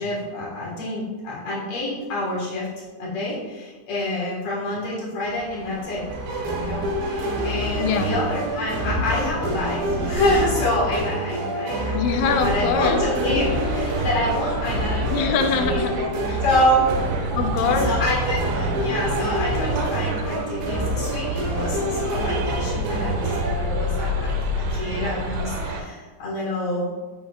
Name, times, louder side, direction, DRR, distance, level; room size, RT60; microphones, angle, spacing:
voice 1, 0.0-2.7 3.0-6.0 6.6-15.8 16.4-16.9 17.8-24.3 24.7-27.0, left 1 dB, 60° left, -6 dB, 1.6 m, -27 dB
Thunder / Bicycle, 5.2-11.0, right 1 dB, 45° right, 1.7 m, -34 dB
sound 1, 6.1-24.2, right 1 dB, 65° right, 2.7 m, -28 dB
voice 2, 7.8-8.2 11.9-13.0 15.1-16.4 17.3-17.9, left 6 dB, 90° left, 6 dB, 3.0 m, -24 dB
sound 2, 12.1-25.8, right 1 dB, 85° right, 3.2 m, -28 dB
7.0 x 6.5 x 2.3 m, 1.3 s
omnidirectional pair, 5.2 m